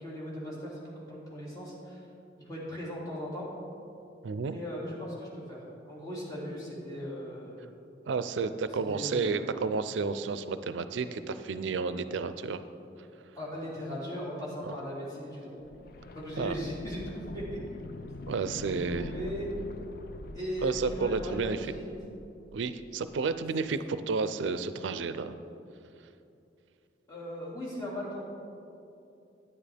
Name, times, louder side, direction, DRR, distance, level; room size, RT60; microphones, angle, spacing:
voice 1, 0.0-2.0 2.4-3.5 4.5-7.7 8.7-9.5 13.3-15.6 16.1-17.6 18.6-19.5 20.3-21.9 27.1-28.2, equal, 20° left, -7 dB, 2.3 m, -38 dB
voice 2, 4.2-4.6 8.1-12.6 14.6-14.7 16.4-16.6 18.3-19.1 20.6-21.7 22.5-25.4, right 4 dB, 85° right, 11 dB, 0.4 m, -31 dB
sound 1, 15.6-23.4 23.7-23.8, left 2 dB, 55° left, 0.4 m, -44 dB
9.8 x 9.8 x 3.4 m, 2.7 s
head